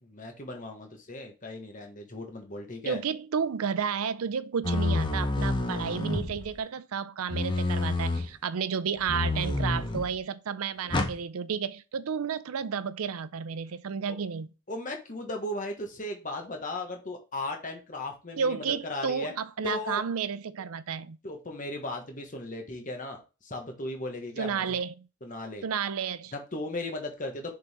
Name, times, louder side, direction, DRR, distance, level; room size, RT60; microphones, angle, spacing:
voice 1, 0.0-3.0 14.1-14.2 14.7-19.3 19.6-20.0 21.2-24.8 25.2-25.6 26.3-27.5, left 2 dB, 35° left, 1.2 m, -36 dB
voice 2, 2.9-14.5 18.4-21.2 24.4-25.1 25.6-26.3, right 6 dB, 75° right, 0.5 m, -32 dB
sound 1, 4.6-6.6 7.3-8.3 9.1-10.1 10.9-11.2, left 2 dB, 20° left, 0.7 m, -28 dB
6.8 x 3.9 x 3.5 m
head